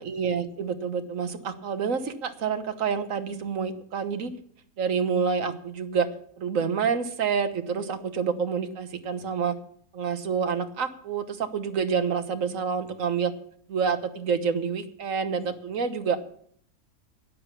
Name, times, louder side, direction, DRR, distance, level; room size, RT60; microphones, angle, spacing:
voice 1, 0.0-4.3 4.8-6.1 6.4-9.5 9.9-13.3 13.7-16.2, right 6 dB, 65° right, 10 dB, 1.5 m, -28 dB
11.5 x 10.0 x 6.8 m, 0.62 s
omnidirectional pair, 1.6 m